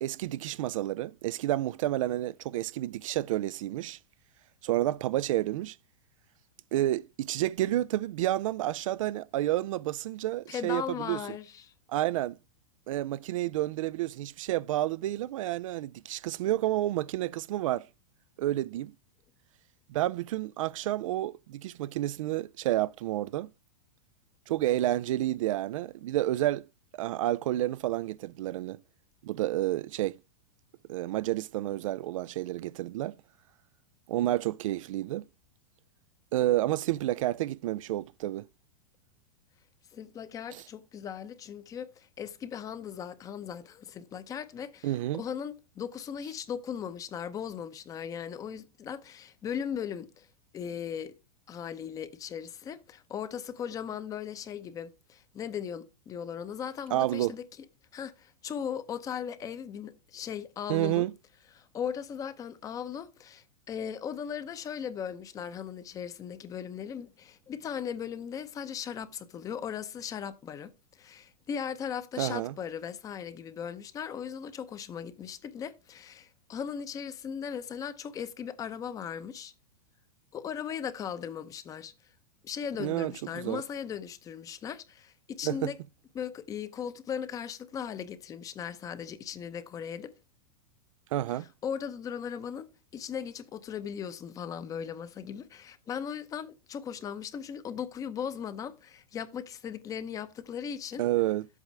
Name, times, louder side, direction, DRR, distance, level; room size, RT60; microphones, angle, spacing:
voice 1, 0.0-4.0 4.6-5.8 6.7-11.2 11.9-12.4 12.9-17.9 18.4-18.9 19.9-23.5 24.5-26.7 27.0-28.8 29.2-30.2 30.9-33.1 34.1-35.2 36.3-38.4 40.5-40.6 44.8-45.2 56.9-57.3 60.7-61.1 72.2-72.5 82.8-83.6 85.4-85.7 91.1-91.5 101.0-101.5, right 14 dB, 65° right, 0.4 m, -30 dB
voice 2, 10.5-11.7 39.9-50.3 50.5-51.1 51.5-57.4 57.9-61.0 61.5-70.7 71.0-79.5 80.3-81.9 82.4-85.8 86.1-90.1 91.6-101.0, left 8 dB, 20° left, 0.7 m, -38 dB
10.5 x 8.3 x 3.3 m
supercardioid pair, 150°, 18 cm